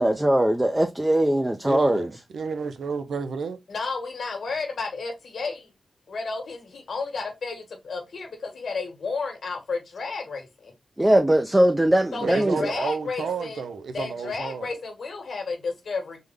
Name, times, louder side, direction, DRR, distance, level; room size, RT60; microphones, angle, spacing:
voice 1, 0.0-2.1 11.0-12.6, right 1 dB, 15° right, 0.4 m, -20 dB
voice 2, 1.6-3.6 12.2-14.7, right 5 dB, 85° right, 0.4 m, -31 dB
voice 3, 3.7-5.7 6.1-10.7 12.1-13.6 13.9-16.2, left 4 dB, 75° left, 1.2 m, -32 dB
3.5 x 2.1 x 3.1 m
cardioid pair, 50°, 0 cm